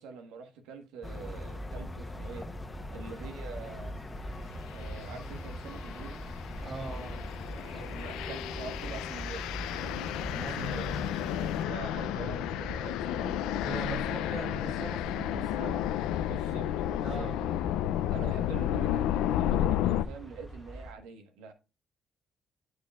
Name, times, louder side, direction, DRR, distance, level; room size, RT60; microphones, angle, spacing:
voice 1, 0.0-2.5 2.9-4.0 4.7-6.2 7.5-10.9 11.6-14.4 16.3-17.3 18.1-21.5, right 5 dB, 90° right, 1.4 m, -45 dB
sound 1, 1.0-11.7, left 1 dB, 20° left, 1.2 m, -40 dB
sound 2, 4.8-5.0 5.6-20.1, left 12 dB, 85° left, 0.4 m, -32 dB
voice 2, 6.6-7.3 10.4-10.9 13.6-15.8 17.0-17.6, right 4 dB, 45° right, 2.9 m, -41 dB
sound 3, 10.0-20.9, right 1 dB, ahead, 1.3 m, -44 dB
9.6 x 6.5 x 2.4 m
supercardioid pair, 60°, 0 cm